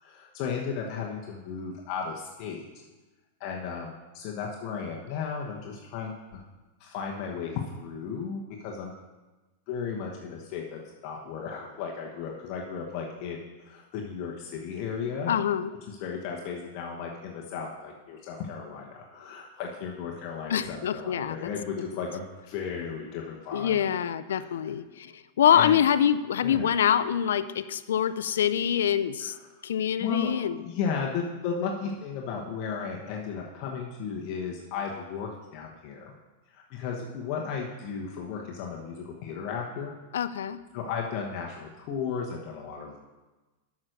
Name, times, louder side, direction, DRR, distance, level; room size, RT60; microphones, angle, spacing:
voice 1, 0.0-2.6 3.4-6.4 6.8-8.9 9.7-15.3 15.9-23.8 24.3-24.5 25.5-25.8 26.4-26.7 29.2-29.6 30.0-30.3 30.6-36.1 36.5-39.9 40.7-43.0, left 6 dB, 45° left, -1 dB, 1.2 m, -35 dB
voice 2, 15.3-15.7 20.5-21.5 23.5-29.3 29.6-30.6 40.1-40.6, left 9 dB, 85° left, 13 dB, 0.5 m, -25 dB
7.3 x 6.1 x 6.6 m, 1.2 s
hypercardioid pair, 130°, 0 cm